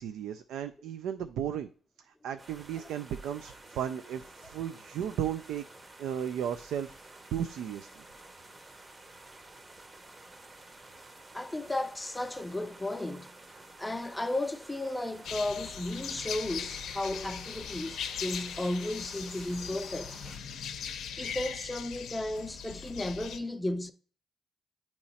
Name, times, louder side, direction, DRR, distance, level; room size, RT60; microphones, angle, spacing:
voice 1, 0.0-1.7 2.2-5.7 6.0-8.0, right 9 dB, 85° right, 0.3 m, -35 dB
sound 1, 2.4-20.4, right 2 dB, 25° right, 0.7 m, -52 dB
voice 2, 11.3-13.3 13.8-20.1 21.2-23.9, left 1 dB, 10° left, 0.5 m, -34 dB
sound 2, 15.2-23.4, left 8 dB, 75° left, 0.6 m, -40 dB
8.5 x 3.0 x 4.1 m
cardioid pair, 90°, 0 cm